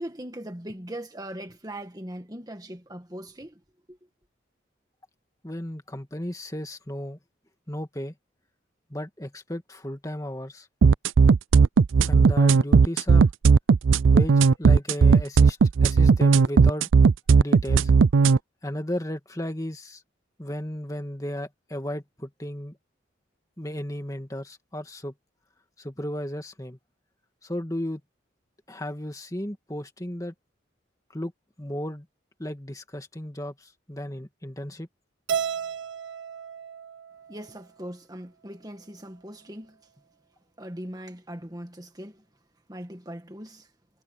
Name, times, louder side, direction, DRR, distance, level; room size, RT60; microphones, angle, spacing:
voice 1, 0.0-3.6 3.9-4.0 37.3-39.8 40.6-42.2 42.7-43.7, right 1 dB, 20° right, 1.8 m, -39 dB
voice 2, 5.4-7.2 7.7-8.1 8.9-10.7 11.5-11.7 12.0-13.3 14.1-16.9 17.4-17.9 18.6-20.0 20.4-22.8 23.6-25.1 25.8-26.8 27.4-28.0 28.7-30.3 31.1-31.3 31.6-32.1 32.4-34.9, left 1 dB, 15° left, 2.2 m, -34 dB
sound 1, 10.8-18.4, right 5 dB, 85° right, 0.5 m, -16 dB
Keyboard (musical), 35.3-37.6, right 7 dB, 70° right, 0.9 m, -33 dB
head